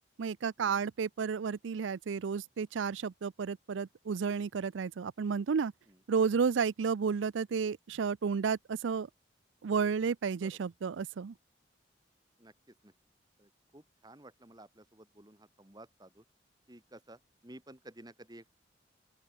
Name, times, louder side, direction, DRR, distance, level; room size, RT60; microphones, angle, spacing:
voice 1, 0.2-5.7 6.1-9.1 9.6-11.3, right 6 dB, 80° right, 0.4 m, -32 dB
voice 2, 12.4-12.9 13.4-16.2 16.7-18.5, right 1 dB, 20° right, 2.1 m, -54 dB
open air
head